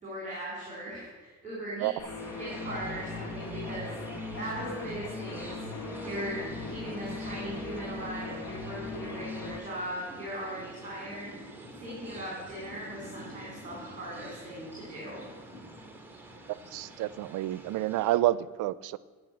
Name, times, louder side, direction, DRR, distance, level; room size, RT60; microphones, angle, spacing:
voice 1, 0.0-1.9 2.4-3.9 4.4-5.6 6.0-11.3 11.8-15.2, right 1 dB, 20° right, -5 dB, 3.8 m, -39 dB
sound 1, 2.0-9.6, left 3 dB, 70° left, 2.3 m, -39 dB
sound 2, 2.2-18.2, right 1 dB, 5° right, 1.4 m, -47 dB
voice 2, 16.7-19.0, right 15 dB, 80° right, 18 dB, 0.5 m, -29 dB
10.5 x 5.9 x 7.7 m, 1.3 s
cardioid pair, 120°, 31 cm